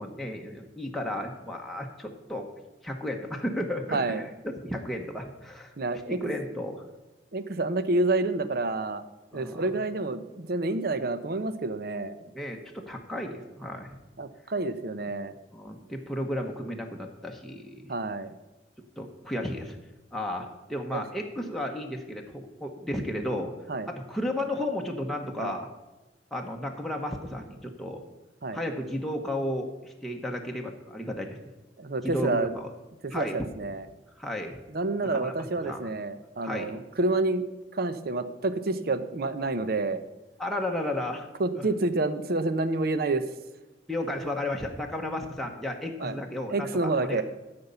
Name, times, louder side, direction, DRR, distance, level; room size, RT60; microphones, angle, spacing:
voice 1, 0.0-2.5 2.8-4.3 4.6-6.8 9.3-9.7 12.3-14.0 15.5-17.8 19.0-19.8 20.1-23.5 23.9-25.7 26.3-28.0 28.5-31.4 32.0-32.7 33.1-33.4 34.2-34.6 35.0-35.3 35.6-35.8 36.4-36.7 40.4-41.3 41.6-41.7 43.9-47.2, left 1 dB, ahead, 1 dB, 1.0 m, -33 dB
voice 2, 3.9-4.2 5.8-6.2 7.3-9.0 9.3-12.2 14.2-15.3 17.9-18.3 20.9-21.0 23.7-23.9 25.4-25.5 28.4-28.6 31.8-32.5 33.0-33.8 34.7-37.5 37.7-40.0 41.4-43.3 46.0-46.1 46.5-47.2, right 2 dB, 55° right, 12 dB, 0.7 m, -28 dB
12.5 x 5.3 x 6.8 m, 1.1 s
head